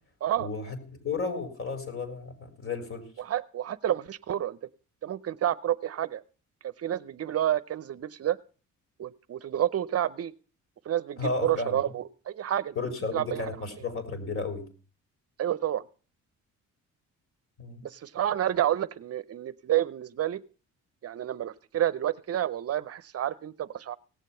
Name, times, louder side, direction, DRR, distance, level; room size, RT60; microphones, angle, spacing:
voice 1, 0.4-3.1 11.2-11.8 12.8-14.7 17.6-17.8, left 4 dB, 45° left, 7 dB, 3.8 m, -33 dB
voice 2, 3.2-4.6 5.0-6.2 6.8-8.4 9.0-10.3 10.9-12.7 13.1-13.4 15.4-15.8 17.8-20.4 21.0-24.0, right 11 dB, 50° right, 15 dB, 0.6 m, -29 dB
17.5 x 7.4 x 5.5 m, 0.38 s
cardioid pair, 90°, 30 cm